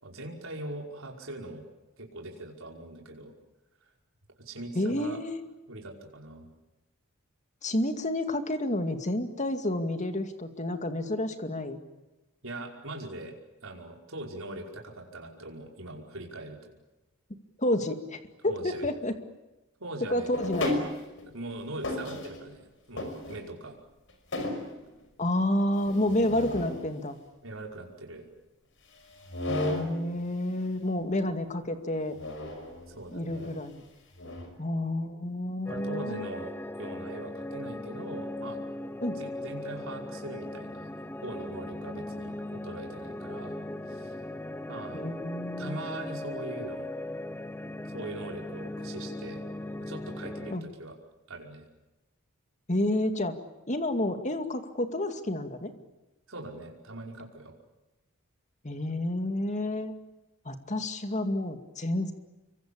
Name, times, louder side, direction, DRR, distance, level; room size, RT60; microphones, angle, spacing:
voice 1, 0.0-1.7 2.0-3.3 3.8-3.9 4.4-5.2 5.7-6.5 12.4-13.3 13.6-16.6 18.4-18.8 19.8-20.4 21.3-23.8 27.4-28.3 32.9-33.6 35.7-38.6 39.1-40.9 41.2-43.6 43.9-44.2 44.7-45.0 45.6-46.9 47.9-49.4 49.8-51.0 51.3-51.6 56.3-57.5, right 2 dB, 65° right, 1 dB, 5.4 m, -41 dB
voice 2, 4.8-5.4 7.6-11.8 17.6-19.1 20.1-20.8 25.2-27.2 29.5-32.2 33.1-33.8 34.6-36.3 39.0-39.2 44.9-45.8 50.5-50.6 52.7-53.4 53.7-55.7 58.6-59.9 60.5-62.1, left 1 dB, 35° left, 8 dB, 2.3 m, -30 dB
sound 1, 20.3-21.3 21.8-22.5 23.0-23.7 24.1-24.8 25.8-26.8 29.1-30.0 32.2-32.9 33.3-33.6 34.2-34.5, left 1 dB, 60° left, 5.6 m, -34 dB
sound 2, 35.7-50.6, left 1 dB, 10° left, 0.9 m, -38 dB
27.0 x 24.0 x 8.7 m, 1.0 s
head